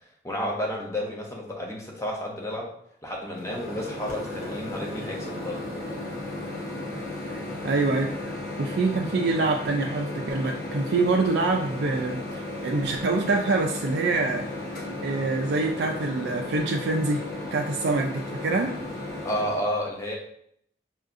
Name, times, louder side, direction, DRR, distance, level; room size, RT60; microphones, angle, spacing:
voice 1, 0.2-2.7 3.0-5.6 19.2-20.2, equal, 15° left, -1 dB, 0.7 m, -31 dB
Microwave oven, 3.3-19.6, left 2 dB, 50° left, 1.0 m, -35 dB
voice 2, 7.6-14.4 15.0-17.2 17.5-18.7, right 3 dB, 85° right, 1 dB, 0.4 m, -25 dB
5.5 x 2.6 x 2.5 m, 0.69 s
head